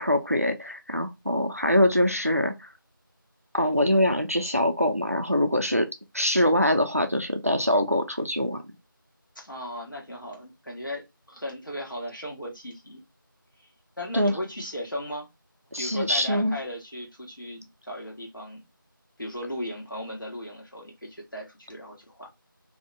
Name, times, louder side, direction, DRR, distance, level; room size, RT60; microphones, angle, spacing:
voice 1, 0.0-2.7 3.5-5.9 6.1-8.6 14.1-14.3 15.7-16.6, left 1 dB, 40° right, 0.4 m, -23 dB
voice 2, 9.3-13.0 13.6-13.7 14.0-15.3 15.8-18.7 19.2-22.3, left 1 dB, 65° left, 1.3 m, -37 dB
2.6 x 2.1 x 2.8 m
figure-of-eight pair, 180°, 12 cm